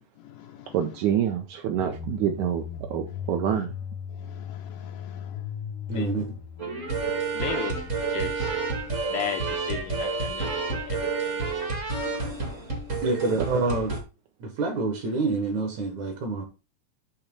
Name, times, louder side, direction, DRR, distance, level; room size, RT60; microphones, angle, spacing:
voice 1, 0.2-0.8 4.1-5.5 5.9-6.1 7.3-8.6 9.1-11.5, left 9 dB, 85° left, 1.9 m, -37 dB
voice 2, 0.7-3.7 13.4-13.5, right 9 dB, 80° right, 1.7 m, -27 dB
sound 1, 1.8-10.6, left 8 dB, 65° left, 1.4 m, -39 dB
voice 3, 5.9-6.3 13.0-13.9 14.4-16.4, right 3 dB, 65° right, 2.2 m, -27 dB
sound 2, 6.6-14.0, right 4 dB, 45° right, 0.9 m, -29 dB
8.6 x 3.1 x 5.3 m
omnidirectional pair, 4.4 m